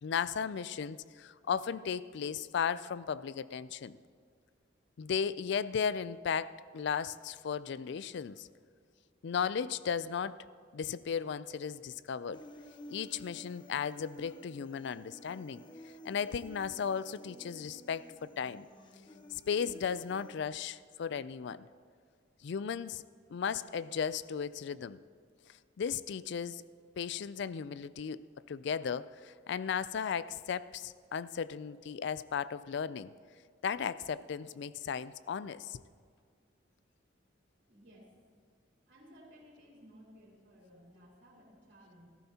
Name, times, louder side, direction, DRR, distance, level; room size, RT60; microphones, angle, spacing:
voice 1, 0.0-4.0 5.0-8.5 9.2-10.4 10.7-12.4 12.9-15.6 16.0-18.7 19.3-21.7 22.4-23.0 23.3-25.0 25.8-26.6 27.0-28.2 28.5-33.1 33.6-35.8, left 7 dB, 65° left, 16 dB, 0.4 m, -35 dB
Human voice, 12.3-20.3, left 1 dB, 25° left, 0.9 m, -52 dB
voice 2, 37.7-38.1 38.9-42.1, equal, 65° right, -4 dB, 3.6 m, -57 dB
16.5 x 14.0 x 2.9 m, 2.1 s
head